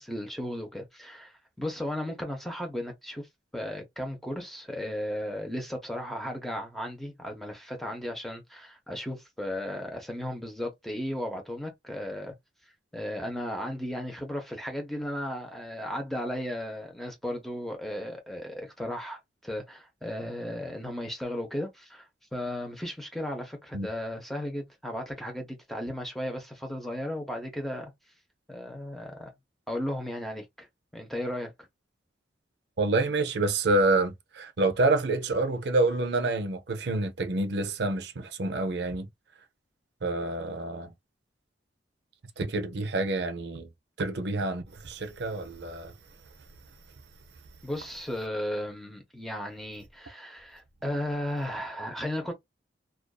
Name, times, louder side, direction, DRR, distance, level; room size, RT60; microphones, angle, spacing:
voice 1, 0.0-3.3 3.5-12.3 12.9-27.9 28.5-29.3 29.7-30.7 30.9-31.5 47.6-52.3, left 1 dB, ahead, 0.6 m, -35 dB
voice 2, 32.8-39.1 40.0-40.9 42.4-43.7 44.0-45.9, right 2 dB, 60° right, 0.5 m, -27 dB
2.5 x 2.3 x 2.2 m
head